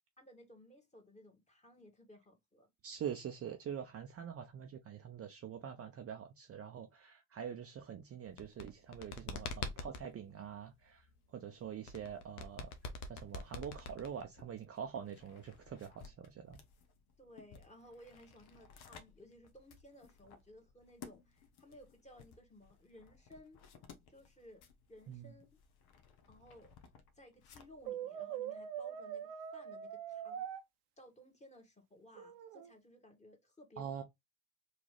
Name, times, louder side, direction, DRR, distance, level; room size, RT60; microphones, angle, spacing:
voice 1, 0.2-2.7 17.2-23.6 24.1-24.6 24.9-25.6 26.3-26.7 27.1-30.6 31.0-34.0, equal, 15° left, 1.7 m, -59 dB
voice 2, 2.8-12.7 13.1-16.6 25.1-25.3 33.8-34.0, right 8 dB, 30° right, 0.7 m, -45 dB
sound 1, 8.3-10.1 11.9-14.4, left 4 dB, 85° left, 0.8 m, -43 dB
sound 2, 11.6-27.9, left 6 dB, 60° left, 1.1 m, -60 dB
Brass instrument, 27.9-30.6 32.2-32.7, right 9 dB, 70° right, 0.8 m, -43 dB
3.9 x 2.8 x 3.2 m
hypercardioid pair, 70°, 45 cm